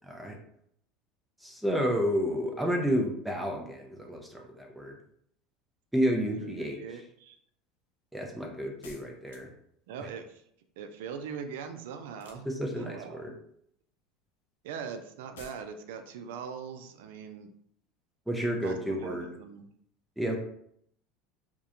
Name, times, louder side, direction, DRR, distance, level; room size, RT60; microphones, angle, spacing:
voice 1, 1.4-5.0 5.9-6.8 8.1-9.5 12.5-13.3 18.3-19.3 20.2-20.4, equal, 5° right, 1 dB, 0.5 m, -30 dB
voice 2, 6.3-7.4 9.9-10.4 10.8-12.5 12.8-13.2 14.6-17.5 18.6-19.7, right 6 dB, 80° right, 7 dB, 0.3 m, -41 dB
sound 1, 8.8-9.7 12.1-12.9 15.4-15.7, left 4 dB, 90° left, 0.4 m, -52 dB
2.3 x 2.1 x 2.8 m, 0.69 s
supercardioid pair, 95°, 0 cm